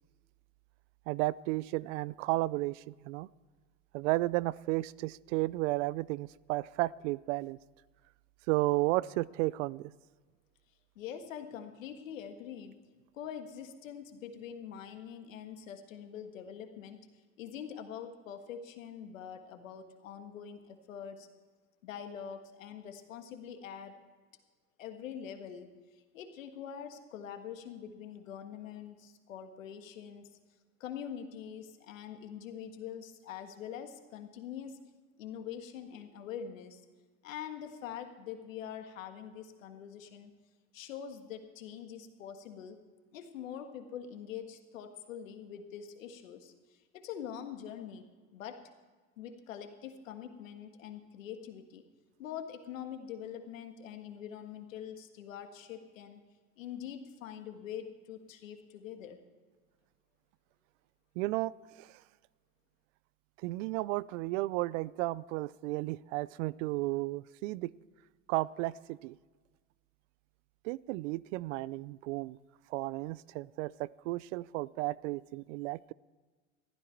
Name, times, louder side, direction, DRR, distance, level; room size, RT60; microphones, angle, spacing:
voice 1, 1.1-3.3 3.9-7.6 8.5-9.9 61.2-61.9 63.4-67.7 68.3-69.2 70.6-72.4 72.7-75.9, right 19 dB, 70° right, 22 dB, 0.5 m, -33 dB
voice 2, 10.9-12.8 13.1-17.0 17.4-21.3 21.8-24.0 24.8-25.7 26.1-30.3 30.8-34.8 35.2-36.8 37.2-40.3 40.7-42.8 43.1-48.0 48.3-48.6 49.2-51.8 52.2-56.2 56.6-59.2, left 8 dB, 85° left, 7 dB, 1.6 m, -44 dB
15.0 x 13.0 x 4.5 m, 1.4 s
hypercardioid pair, 90°, 39 cm